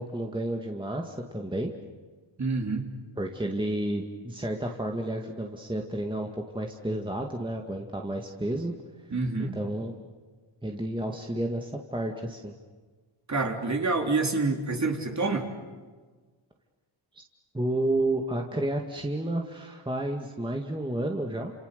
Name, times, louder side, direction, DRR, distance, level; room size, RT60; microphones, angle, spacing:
voice 1, 0.0-1.7 3.2-8.7 9.4-9.9 10.6-12.5 17.1-17.2 17.5-21.5, right 1 dB, 10° right, 2 dB, 2.2 m, -31 dB
voice 2, 2.4-2.9 9.1-9.6 13.3-15.5, right 3 dB, 35° right, 2 dB, 3.8 m, -27 dB
29.0 x 28.5 x 6.9 m, 1.4 s
cardioid pair, 85°, 48 cm